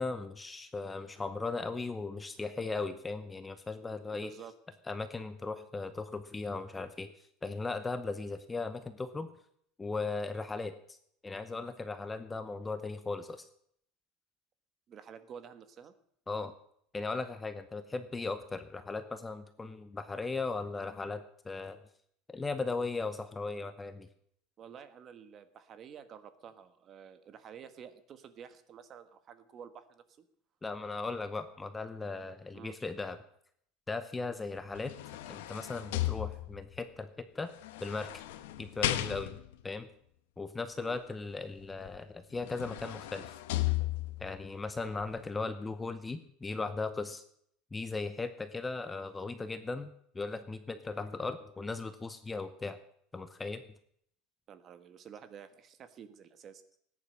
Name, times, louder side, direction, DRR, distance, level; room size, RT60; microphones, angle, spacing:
voice 1, 0.0-4.3 4.9-7.1 7.4-9.3 9.8-11.0 11.2-13.5 16.3-16.5 16.9-21.8 22.3-24.1 30.6-33.2 33.9-34.9 35.3-37.5 37.8-38.1 38.6-39.4 39.6-39.9 40.4-43.3 44.2-47.2 47.7-52.8 53.1-53.6, left 3 dB, 10° left, 10 dB, 0.8 m, -37 dB
voice 2, 4.1-4.5 14.9-15.9 24.6-30.2 32.5-32.7 40.7-41.0 54.5-56.6, right 8 dB, 30° right, 11 dB, 1.4 m, -50 dB
sound 1, 34.6-36.8 37.6-39.6 41.9-42.0 42.3-44.3 44.9-45.0, left 15 dB, 90° left, 1.2 m, -35 dB
18.5 x 10.0 x 6.5 m, 0.66 s
cardioid pair, 160°, 0 cm